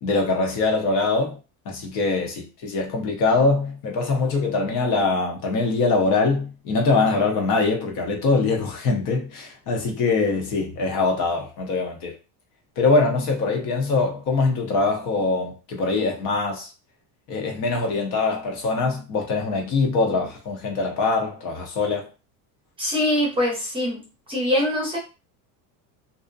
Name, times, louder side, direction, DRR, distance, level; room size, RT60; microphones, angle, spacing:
voice 1, 0.0-1.4 1.7-12.2 12.8-16.7 17.3-22.1, left 3 dB, 50° left, 0.8 m, -23 dB
voice 2, 22.8-24.0 24.3-25.0, left 1 dB, 15° right, 0.7 m, -23 dB
2.5 x 2.1 x 2.5 m
cardioid pair, 160°, 41 cm